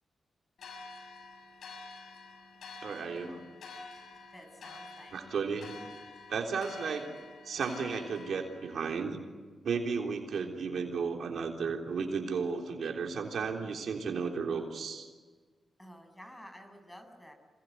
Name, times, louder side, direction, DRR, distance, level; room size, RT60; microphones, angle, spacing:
sound 1, 0.6-8.8, left 3 dB, 80° left, 6.1 m, -49 dB
voice 1, 2.8-3.4 5.1-5.8 6.3-7.1 7.4-9.2 9.6-15.1, right 5 dB, 75° right, 2 dB, 3.7 m, -34 dB
voice 2, 4.3-5.2 6.6-6.8 15.8-17.3, equal, 10° left, 6 dB, 7.3 m, -51 dB
27.0 x 22.5 x 9.5 m, 1.4 s
cardioid pair, 65°, 0 cm